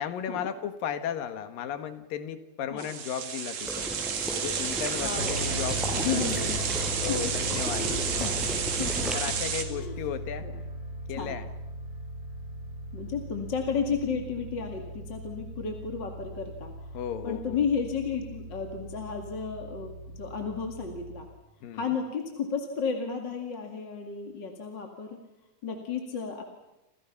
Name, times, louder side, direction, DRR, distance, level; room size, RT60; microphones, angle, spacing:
voice 1, 0.0-3.9 4.3-6.2 7.0-8.4 9.1-10.5 11.1-11.5 16.9-17.6 21.6-21.9, left 8 dB, 75° left, 10 dB, 3.0 m, -35 dB
sound 1, 2.8-9.6, right 7 dB, 60° right, 3.5 m, -31 dB
Water / Liquid, 3.6-9.1, right 1 dB, ahead, 5.6 m, -35 dB
voice 2, 5.0-5.6 5.9-6.6 7.1-7.2 7.8-9.2 9.4-10.0 10.4-10.6 11.2-11.4 12.9-17.0 17.2-21.3 21.7-25.2 25.6-26.4, left 6 dB, 35° left, 3 dB, 2.4 m, -33 dB
sound 2, 5.2-21.2, equal, 30° right, 6.1 m, -39 dB
29.5 x 27.5 x 5.8 m, 0.95 s
omnidirectional pair, 4.2 m